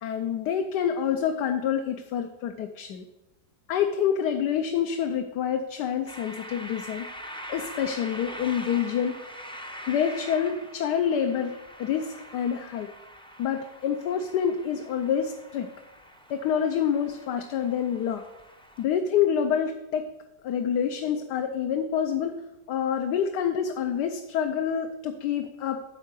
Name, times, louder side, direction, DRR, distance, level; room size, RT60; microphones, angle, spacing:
voice 1, 0.0-3.0 3.7-7.1 7.5-9.2 9.9-12.9 13.4-15.7 16.3-18.2 18.8-20.1 20.4-25.8, left 8 dB, 80° left, 5 dB, 1.3 m, -27 dB
sound 1, 6.1-18.8, equal, 5° left, 0.3 m, -44 dB
12.5 x 4.6 x 8.3 m, 1.0 s
omnidirectional pair, 1.8 m